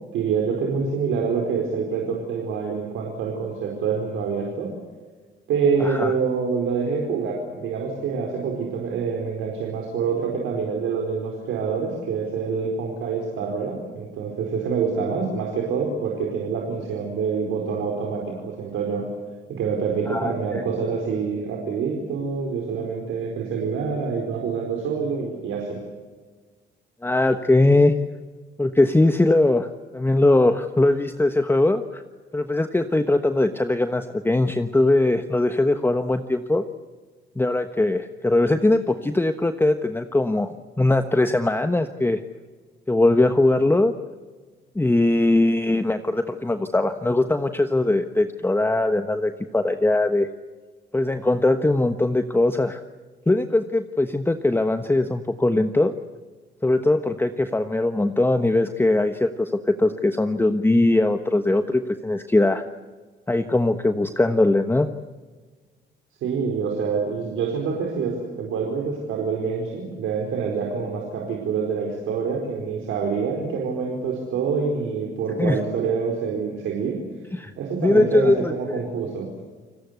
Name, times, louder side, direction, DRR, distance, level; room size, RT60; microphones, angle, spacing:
voice 1, 0.1-4.7 5.5-19.1 19.5-25.8 66.2-77.0 77.6-79.3, right 5 dB, 85° right, 0 dB, 4.7 m, -26 dB
voice 2, 5.8-6.2 20.1-20.6 27.0-27.9 28.6-29.7 29.9-32.0 32.3-36.6 37.4-42.2 42.9-43.9 44.7-50.3 50.9-52.8 53.3-55.9 56.6-62.6 63.3-64.9 75.4-75.6 77.3-77.5 77.8-78.5, left 2 dB, 10° left, 8 dB, 1.2 m, -20 dB
29.5 x 19.0 x 8.2 m, 1.4 s
cardioid pair, 90°, 20 cm